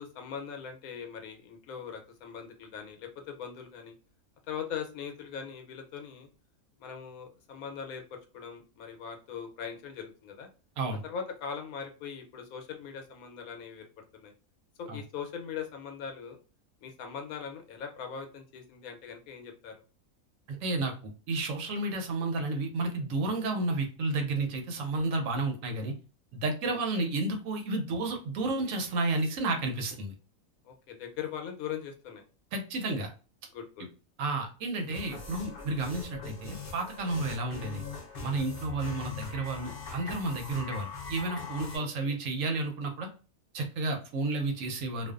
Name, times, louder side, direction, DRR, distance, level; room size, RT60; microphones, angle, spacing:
voice 1, 0.0-3.9 4.5-6.3 6.8-10.5 11.0-14.3 14.8-16.4 16.8-19.8 26.7-27.1 30.6-32.2 33.5-33.9 41.7-42.2, left 7 dB, 85° left, 4 dB, 1.1 m, -41 dB
voice 2, 20.5-25.9 26.3-30.1 32.5-33.1 34.2-37.8 38.2-43.1 43.5-45.1, right 2 dB, 70° right, 3 dB, 0.9 m, -31 dB
sound 1, 34.9-41.8, left 5 dB, 50° left, 0.7 m, -41 dB
2.5 x 2.2 x 2.3 m, 0.35 s
omnidirectional pair, 1.5 m